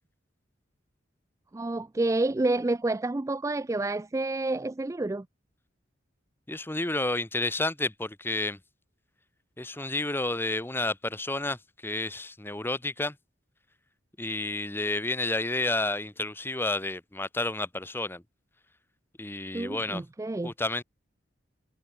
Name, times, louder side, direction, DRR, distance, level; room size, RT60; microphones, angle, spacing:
voice 1, 1.5-5.3 9.8-9.9 19.5-20.5, right 2 dB, 15° right, 0.4 m, -29 dB
voice 2, 6.5-8.6 9.6-13.2 14.2-18.2 19.2-20.0 20.4-20.8, left 2 dB, 10° left, 1.0 m, -30 dB
head